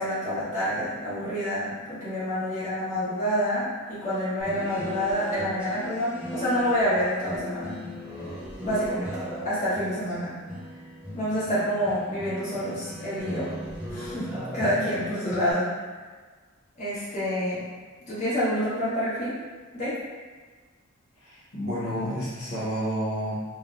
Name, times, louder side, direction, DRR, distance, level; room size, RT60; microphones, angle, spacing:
voice 1, 0.0-7.7 8.6-10.4 11.1-13.5 13.9-15.7 16.8-17.6 18.1-19.4 19.7-19.9, equal, 35° left, -12 dB, 1.3 m, -28 dB
sound 1, 4.4-15.5, equal, 5° right, 0.5 m, -37 dB
voice 2, 21.2-23.4, equal, 80° left, -9 dB, 1.0 m, -30 dB
3.3 x 2.2 x 2.5 m, 1.4 s
head